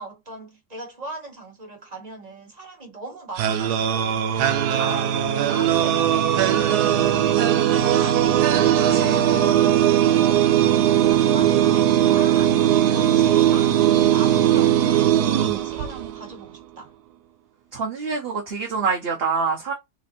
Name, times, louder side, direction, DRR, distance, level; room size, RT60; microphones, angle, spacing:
voice 1, 0.0-5.2 5.5-16.9, right 2 dB, 25° right, 1.7 m, -40 dB
sound 1, 3.4-16.3, right 11 dB, 85° right, 1.2 m, -19 dB
voice 2, 4.8-5.1 8.9-9.2 17.7-19.7, right 5 dB, 45° right, 1.0 m, -26 dB
4.2 x 2.7 x 4.3 m
omnidirectional pair, 1.7 m